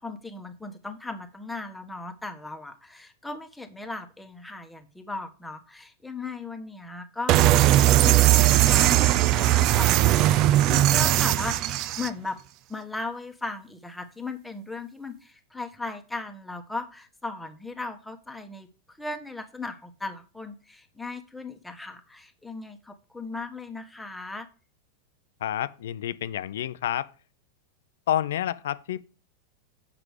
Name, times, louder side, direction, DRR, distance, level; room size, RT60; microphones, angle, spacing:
voice 1, 0.0-12.4 12.7-18.7 19.0-24.5, left 3 dB, 5° left, 1.3 m, -37 dB
sound 1, 7.3-12.1, right 14 dB, 40° right, 0.4 m, -19 dB
voice 2, 25.4-27.1 28.1-29.0, left 11 dB, 60° left, 0.5 m, -29 dB
7.8 x 5.9 x 4.9 m
figure-of-eight pair, 90°, 0 cm